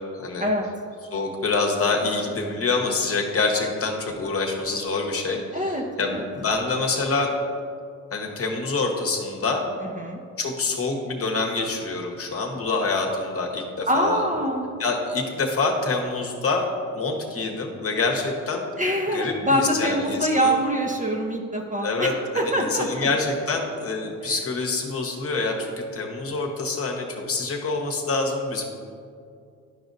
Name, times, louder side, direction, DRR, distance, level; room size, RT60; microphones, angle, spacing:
voice 1, 0.1-0.4 1.1-7.3 8.1-9.6 10.4-14.3 14.8-18.6 19.1-20.5 21.8-28.6, left 3 dB, 35° left, 1 dB, 1.2 m, -26 dB
voice 2, 5.5-6.2 9.8-10.2 13.9-14.7 18.8-23.1 24.2-24.3, equal, 20° right, 0 dB, 0.9 m, -24 dB
11.5 x 5.0 x 2.6 m, 2.4 s
supercardioid pair, 70°, 40 cm